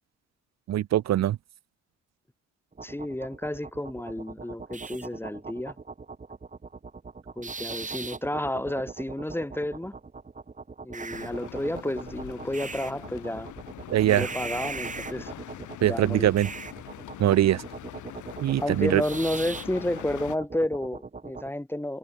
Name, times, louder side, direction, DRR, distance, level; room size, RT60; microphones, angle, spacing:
voice 1, 0.7-1.4 13.9-14.3 15.8-16.5 17.2-17.6 18.4-19.0, right 13 dB, 60° right, 0.7 m, -22 dB
sound 1, 2.7-21.5, right 4 dB, 25° right, 2.1 m, -40 dB
voice 2, 2.8-5.8 7.4-10.0 10.8-13.5 14.1-15.3 15.8-16.3 18.6-22.0, left 1 dB, 5° left, 2.2 m, -31 dB
sound 2, 11.1-20.4, left 12 dB, 75° left, 5.1 m, -43 dB
cardioid pair, 90°, 30 cm